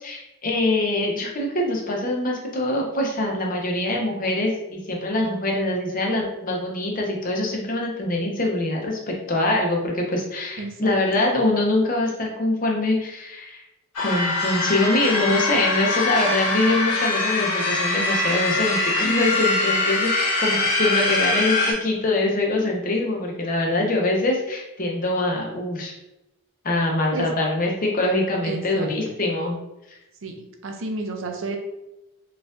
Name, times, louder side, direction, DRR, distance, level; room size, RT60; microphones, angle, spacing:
voice 1, 0.0-13.6 14.0-25.9 26.6-29.6, left 2 dB, 40° left, 0 dB, 0.6 m, -24 dB
voice 2, 10.6-11.2 27.1-27.3 28.4-29.1 30.2-31.6, right 3 dB, 60° right, 4 dB, 0.5 m, -32 dB
sound 1, 13.9-21.7, left 2 dB, 85° left, 0.9 m, -23 dB
4.2 x 2.4 x 2.4 m, 0.93 s
head